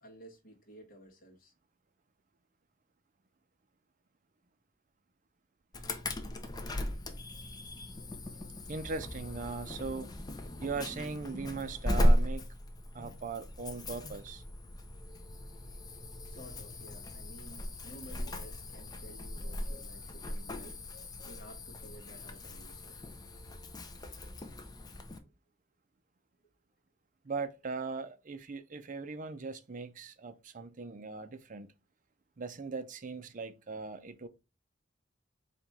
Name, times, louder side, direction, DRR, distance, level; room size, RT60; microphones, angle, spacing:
voice 1, 0.0-1.5 16.2-20.8 21.2-23.0, right 1 dB, 45° left, 1.4 m, -53 dB
Insect / Alarm, 5.7-25.2, equal, 20° left, 0.5 m, -36 dB
voice 2, 8.7-10.1 10.6-12.5 12.9-14.4 27.2-31.7 32.4-34.3, right 4 dB, 45° right, 0.5 m, -39 dB
4.2 x 3.0 x 3.5 m
head